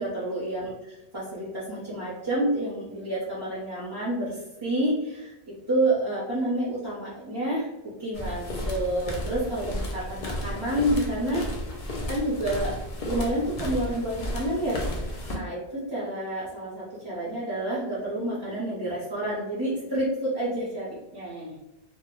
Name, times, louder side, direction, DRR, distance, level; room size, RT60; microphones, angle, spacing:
voice 1, 0.0-5.3 5.7-7.7 8.0-11.8 12.1-12.8 13.0-15.1 15.3-21.5, right 1 dB, 30° right, -8 dB, 0.6 m, -29 dB
sound 1, 8.1-15.3, equal, 50° left, 0.4 m, -33 dB
2.1 x 2.0 x 3.0 m, 0.96 s
omnidirectional pair, 1.1 m